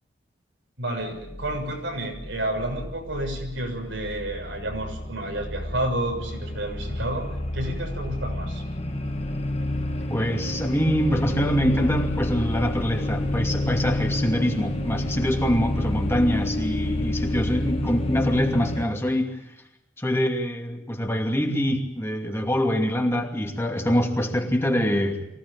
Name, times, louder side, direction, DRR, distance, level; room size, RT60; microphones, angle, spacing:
voice 1, 0.8-8.6, right 1 dB, 90° right, 2 dB, 6.9 m, -30 dB
sound 1, 1.0-18.9, left 1 dB, 35° left, 1.8 m, -30 dB
voice 2, 10.1-19.6 20.0-25.3, equal, 15° left, 2 dB, 2.6 m, -24 dB
24.0 x 17.0 x 8.9 m, 0.84 s
head